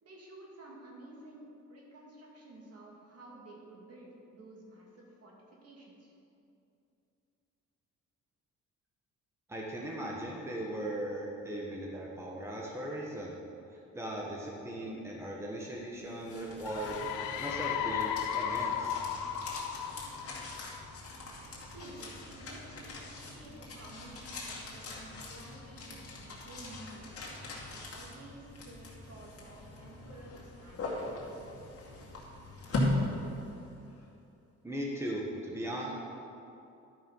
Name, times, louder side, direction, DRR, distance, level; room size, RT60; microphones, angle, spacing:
voice 1, 0.0-6.1 21.5-27.2 27.7-31.5, right 2 dB, 55° right, -2 dB, 2.5 m, -52 dB
voice 2, 9.5-13.4 13.7-17.0 17.4-19.0 34.6-35.9, right 1 dB, 10° right, -3 dB, 1.4 m, -38 dB
sound 1, 16.0-34.0, left 2 dB, 50° left, 2.3 m, -40 dB
sound 2, 16.7-21.2, left 8 dB, 90° left, 0.7 m, -35 dB
12.0 x 5.6 x 5.6 m, 2.7 s
cardioid pair, 90°, 30 cm